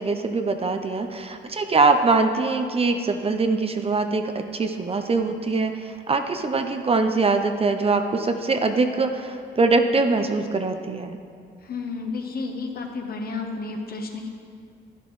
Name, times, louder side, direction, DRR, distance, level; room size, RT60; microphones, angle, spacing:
voice 1, 0.0-11.2, right 3 dB, 30° right, 6 dB, 0.6 m, -23 dB
voice 2, 11.6-14.3, left 4 dB, 50° left, 3 dB, 1.2 m, -31 dB
11.0 x 10.5 x 3.2 m, 2.3 s
cardioid pair, 90°, 20 cm